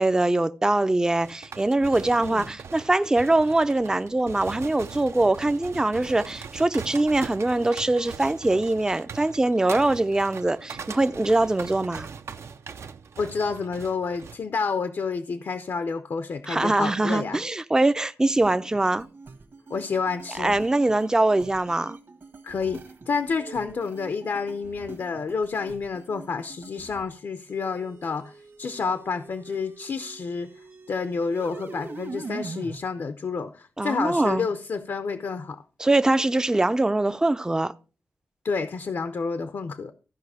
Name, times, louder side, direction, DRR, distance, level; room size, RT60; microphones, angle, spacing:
voice 1, 0.0-12.1 16.5-19.1 20.4-22.0 33.8-34.5 35.8-37.7, right 2 dB, 15° right, 0.4 m, -23 dB
sound 1, 1.2-14.4, right 6 dB, 75° right, 0.6 m, -41 dB
voice 2, 2.1-2.4 13.2-17.4 19.7-20.6 22.4-30.5 30.9-35.6 38.4-39.9, left 5 dB, 70° left, 0.7 m, -29 dB
sound 2, 18.4-27.1 27.5-32.8, right 3 dB, 60° right, 1.4 m, -43 dB
14.5 x 5.1 x 4.8 m
wide cardioid pair, 110°, 5 cm